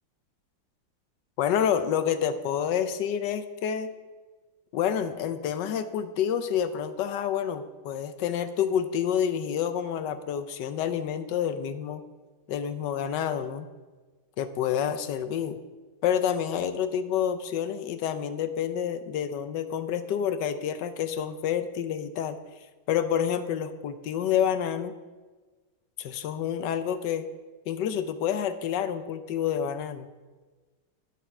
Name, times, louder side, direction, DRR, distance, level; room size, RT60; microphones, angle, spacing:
voice 1, 1.4-3.9 4.7-12.0 12.5-13.7 14.4-15.6 16.0-22.4 22.9-25.0 26.0-27.3 27.7-30.1, left 9 dB, 70° left, 10 dB, 1.2 m, -28 dB
10.0 x 7.6 x 5.9 m, 1.3 s
omnidirectional pair, 2.1 m